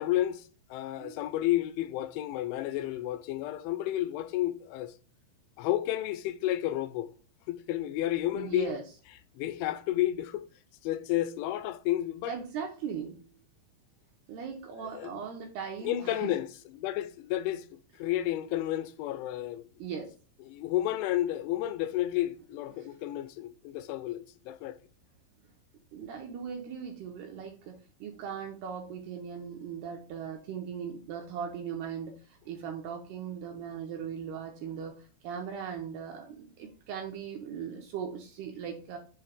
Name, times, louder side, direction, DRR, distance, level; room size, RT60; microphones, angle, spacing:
voice 1, 0.0-5.0 5.6-7.1 7.5-8.7 9.4-10.5 10.8-12.4 14.9-15.2 15.8-16.5 16.8-17.7 18.0-19.6 20.5-24.8, left 14 dB, 85° left, 2.9 m, -31 dB
voice 2, 8.3-8.8 12.3-13.2 14.3-16.4 19.8-20.1 22.7-22.9 25.9-39.0, right 7 dB, 80° right, 2.4 m, -39 dB
7.2 x 2.8 x 4.9 m
omnidirectional pair, 5.6 m